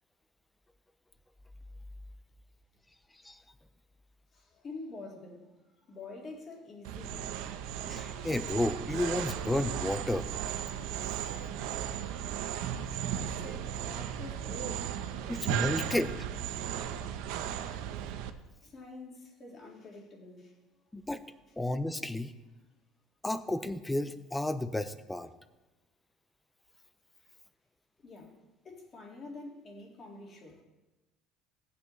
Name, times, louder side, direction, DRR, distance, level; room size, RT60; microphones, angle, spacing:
voice 1, 4.3-7.6 12.5-12.6 13.1-15.3 18.3-20.6 28.0-28.4 28.6-30.6, left 2 dB, 30° left, 0 dB, 2.0 m, -47 dB
sound 1, 6.8-18.3, right 9 dB, 80° right, 0.7 m, -36 dB
voice 2, 7.9-10.3 15.3-16.1 20.9-21.2 21.6-22.3 23.2-25.3, left 1 dB, 5° left, 12 dB, 0.5 m, -32 dB
17.5 x 8.4 x 3.2 m, 1.1 s
cardioid pair, 165°, 0 cm